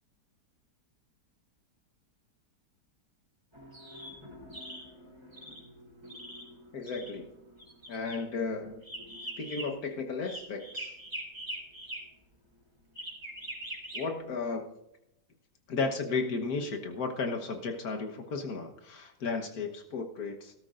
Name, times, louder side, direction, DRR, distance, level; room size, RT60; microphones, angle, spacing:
sound 1, 3.5-12.0 12.9-14.0, right 1 dB, 15° right, 3.6 m, -44 dB
voice 1, 6.7-7.3 7.9-8.8 9.4-10.9 13.9-14.7 15.7-20.5, left 4 dB, 60° left, 4 dB, 1.7 m, -34 dB
18.0 x 13.0 x 2.5 m, 0.85 s
omnidirectional pair, 1.8 m